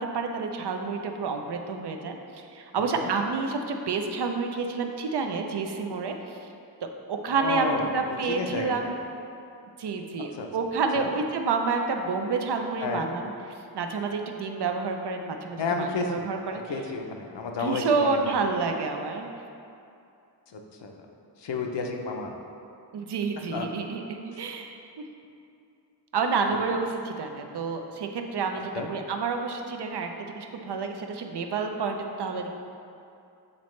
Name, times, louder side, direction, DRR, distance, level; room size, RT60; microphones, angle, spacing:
voice 1, 0.0-6.1 6.8-8.9 9.8-13.3 13.7-16.6 17.6-19.3 22.9-24.7 26.1-32.5, right 4 dB, 70° right, 4 dB, 0.6 m, -29 dB
voice 2, 7.3-8.0 8.3-8.9 10.3-10.5 11.0-11.1 12.8-13.1 15.6-16.2 16.5-18.3 20.5-21.0 21.4-22.4 23.5-23.7 28.7-28.9, left 4 dB, 75° left, 2 dB, 0.7 m, -31 dB
7.4 x 4.1 x 3.2 m, 2.6 s
wide cardioid pair, 115°, 42 cm